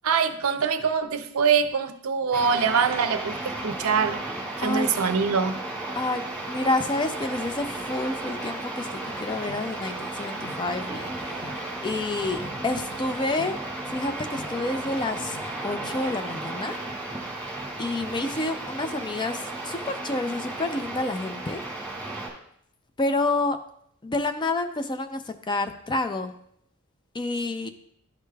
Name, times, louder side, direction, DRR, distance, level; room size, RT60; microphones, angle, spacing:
voice 1, 0.0-4.2 4.6-5.6, right 6 dB, 75° right, 9 dB, 0.5 m, -24 dB
sound 1, 2.3-22.3, right 2 dB, 5° left, 2.0 m, -34 dB
voice 2, 4.6-4.9 6.0-11.6 11.8-13.6 13.9-15.4 15.6-16.8 17.8-21.6 23.0-23.6 24.0-26.3 27.1-27.7, left 2 dB, 20° left, 9 dB, 0.4 m, -29 dB
sound 2, 9.0-16.4, left 2 dB, 60° left, 0.7 m, -47 dB
11.5 x 4.9 x 2.3 m, 0.71 s
head